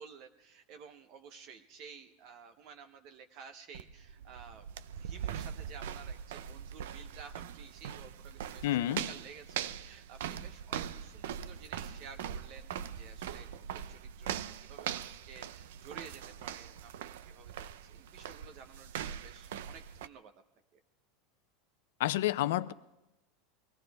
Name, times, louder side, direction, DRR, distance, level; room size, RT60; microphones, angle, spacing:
voice 1, 0.0-4.7 4.9-20.3 20.7-20.8, right 6 dB, 40° right, 6 dB, 0.8 m, -53 dB
sound 1, 3.7-20.1, right 9 dB, 80° right, 0.6 m, -41 dB
voice 2, 8.6-9.1 22.0-22.7, left 14 dB, 70° left, 15 dB, 0.6 m, -29 dB
23.0 x 17.0 x 3.5 m, 0.94 s
supercardioid pair, 170°, 0 cm